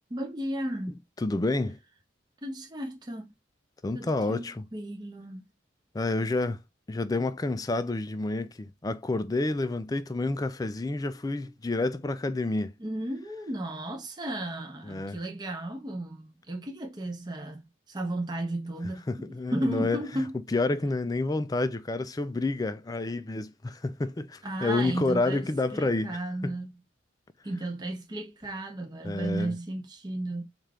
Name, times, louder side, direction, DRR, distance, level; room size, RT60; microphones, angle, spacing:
voice 1, 0.1-1.0 2.4-3.3 3.9-5.5 12.8-20.4 24.4-26.7 27.4-30.4, right 1 dB, 20° right, 0.6 m, -34 dB
voice 2, 1.2-1.8 3.8-4.6 5.9-6.6 6.9-12.7 14.8-15.2 19.1-20.2 20.5-26.6 29.0-29.5, left 2 dB, 20° left, 0.3 m, -29 dB
4.3 x 2.4 x 3.4 m
head